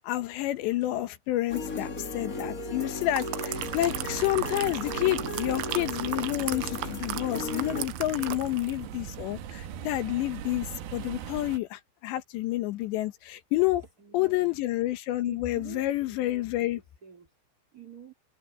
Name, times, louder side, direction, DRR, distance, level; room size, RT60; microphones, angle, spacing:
voice 1, 0.0-13.8 14.1-16.8, left 16 dB, 75° left, 3.2 m, -29 dB
sound 1, 1.5-7.9, left 2 dB, 45° left, 1.0 m, -36 dB
sound 2, 2.8-8.9 9.2-9.4, right 16 dB, 85° right, 3.4 m, -37 dB
sound 3, 3.5-11.6, right 8 dB, 65° right, 2.6 m, -41 dB
voice 2, 8.1-8.4 13.6-14.6 15.2-17.3 17.7-18.1, right 6 dB, 30° right, 1.9 m, -49 dB
omnidirectional pair, 5.5 m